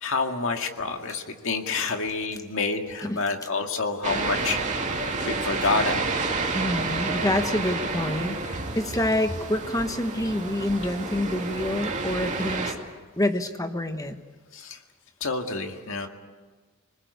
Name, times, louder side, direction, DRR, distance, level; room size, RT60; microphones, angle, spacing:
voice 1, 0.0-4.6 5.2-6.0 14.5-14.8 15.2-16.1, left 4 dB, 65° left, 4 dB, 2.1 m, -28 dB
sound 1, 4.0-12.7, right 3 dB, 35° right, 2.4 m, -30 dB
voice 2, 6.5-12.7 13.2-14.2, left 1 dB, 15° left, 7 dB, 1.4 m, -27 dB
26.5 x 20.5 x 8.3 m, 1.4 s
head